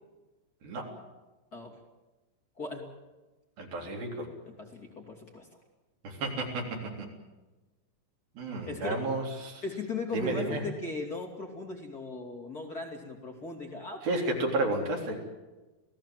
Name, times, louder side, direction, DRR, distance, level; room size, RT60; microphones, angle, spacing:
voice 1, 2.6-2.9 4.6-5.5 8.7-9.0 9.6-14.2, left 3 dB, 25° left, 0 dB, 3.2 m, -38 dB
voice 2, 3.6-4.3 6.0-7.1 8.4-9.6 10.1-10.6 14.0-15.2, right 2 dB, 75° right, 1 dB, 5.3 m, -32 dB
28.5 x 17.5 x 7.7 m, 1.2 s
omnidirectional pair, 4.2 m